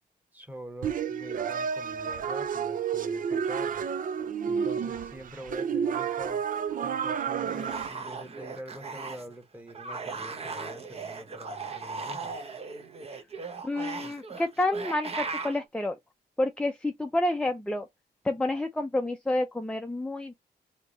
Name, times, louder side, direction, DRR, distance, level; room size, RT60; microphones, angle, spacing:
voice 1, 0.3-3.8 4.4-6.4 6.8-12.4, right 1 dB, 10° right, 1.2 m, -45 dB
sound 1, 0.8-7.9, right 7 dB, 55° right, 0.5 m, -30 dB
sound 2, 7.4-9.4 9.7-15.6, right 4 dB, 35° right, 0.9 m, -38 dB
voice 2, 13.6-16.0 16.4-17.9 18.2-20.3, left 1 dB, 5° left, 0.5 m, -29 dB
3.4 x 2.9 x 3.9 m
cardioid pair, 100°, 17 cm